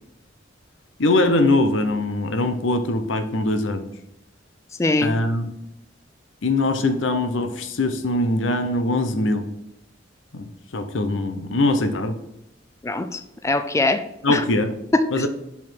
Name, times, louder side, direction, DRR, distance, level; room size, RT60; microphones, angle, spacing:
voice 1, 1.0-3.9 5.0-5.5 6.4-9.5 10.3-12.2 14.2-14.7 15.1-15.3, left 2 dB, 90° left, 9 dB, 0.8 m, -22 dB
voice 2, 4.8-5.2 12.8-14.0 14.3-14.4 14.9-15.3, left 2 dB, 15° left, 9 dB, 0.3 m, -22 dB
5.5 x 4.8 x 4.6 m, 0.84 s
head